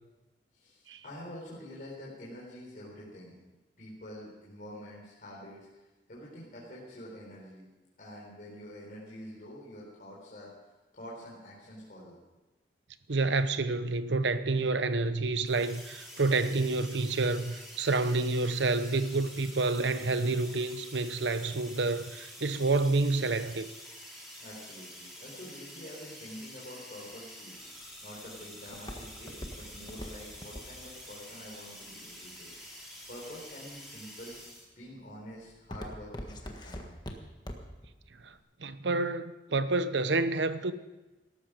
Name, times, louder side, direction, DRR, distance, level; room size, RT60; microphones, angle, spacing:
voice 1, 0.5-3.4 3.8-7.7 8.0-10.5 10.9-12.2 24.3-34.4 34.8-37.0, equal, 50° left, 4.2 m, -47 dB
voice 2, 13.1-23.7 38.2-38.3 38.6-40.7, right 3 dB, 90° right, 0.9 m, -28 dB
sound 1, 15.4-34.6, equal, ahead, 4.1 m, -48 dB
Walk footsteps, 27.6-32.7 33.3-33.8 34.3-34.7 35.0-37.9 38.2-38.3, equal, 25° left, 1.6 m, -43 dB
18.0 x 13.5 x 5.1 m
head